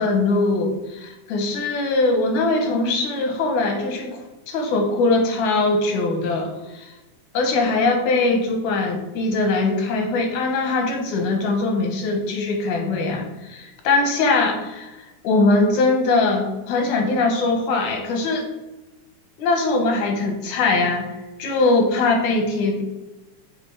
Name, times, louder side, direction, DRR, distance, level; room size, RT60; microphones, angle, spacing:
voice 1, 0.0-4.2 4.5-6.9 7.3-18.4 19.4-21.1 21.4-22.8, left 3 dB, 90° left, 3 dB, 2.5 m, -21 dB
6.8 x 3.6 x 4.6 m, 1.1 s
omnidirectional pair, 3.3 m